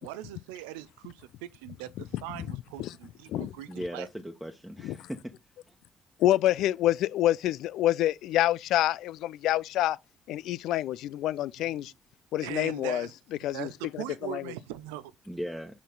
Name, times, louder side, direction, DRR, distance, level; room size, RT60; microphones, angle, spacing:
voice 1, 0.0-4.1 11.8-11.9 12.4-13.1 13.5-15.1, right 14 dB, 80° right, 0.5 m, -41 dB
voice 2, 3.7-5.3 15.3-15.8, equal, 5° right, 1.3 m, -38 dB
voice 3, 6.2-10.0 10.3-11.9 12.3-13.1 13.4-14.4, left 13 dB, 65° left, 0.4 m, -27 dB
6.6 x 5.3 x 3.9 m
hypercardioid pair, 45°, 0 cm